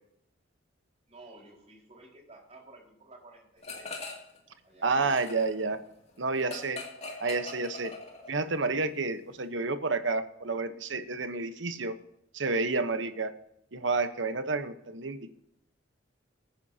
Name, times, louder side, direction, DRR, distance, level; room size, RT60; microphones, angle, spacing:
voice 1, 1.1-4.1 4.6-5.1, right 2 dB, 35° right, -3 dB, 4.8 m, -53 dB
sound 1, 3.6-4.4 4.7-8.5, left 3 dB, 35° left, 2.4 m, -42 dB
voice 2, 4.8-5.8 6.2-6.8 7.2-7.9 8.3-11.9 12.3-13.3 13.7-15.4, right 3 dB, 70° right, 10 dB, 1.0 m, -30 dB
22.0 x 10.0 x 2.8 m, 0.79 s
head